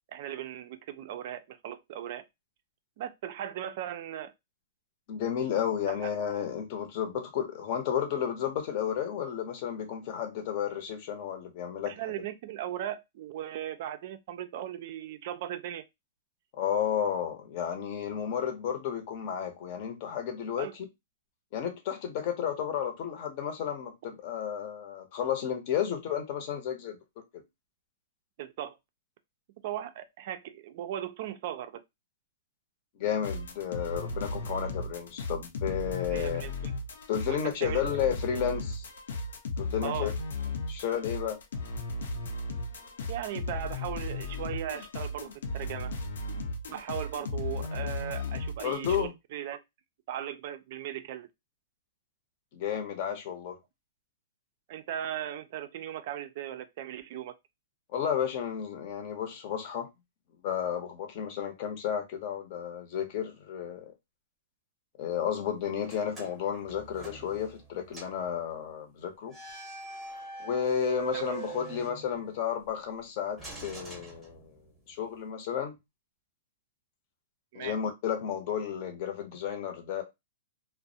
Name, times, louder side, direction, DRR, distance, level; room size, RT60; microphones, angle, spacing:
voice 1, 0.1-2.2 3.0-4.3 5.8-6.1 11.9-15.8 20.6-20.7 28.4-28.8 29.6-31.8 36.1-36.7 37.3-37.8 39.8-40.1 43.1-45.9 46.7-49.6 50.1-51.3 54.7-57.4 71.1-71.4 77.5-77.8, right 11 dB, 50° right, 0.3 m, -38 dB
voice 2, 5.1-11.9 16.5-20.7 21.5-27.0 27.3-27.4 33.0-36.4 37.1-38.9 39.6-40.1 40.7-41.4 48.6-49.1 52.5-53.6 57.9-59.9 60.4-63.9 65.0-69.4 70.4-74.5 74.9-75.8 77.5-80.0, left 9 dB, 40° left, 0.7 m, -32 dB
sound 1, 33.2-49.1, left 2 dB, 85° left, 0.5 m, -35 dB
sound 2, 65.8-67.7 67.9-68.3 69.3-72.5 73.4-74.8, right 6 dB, 5° right, 0.8 m, -42 dB
2.3 x 2.0 x 2.6 m
hypercardioid pair, 155°, 0 cm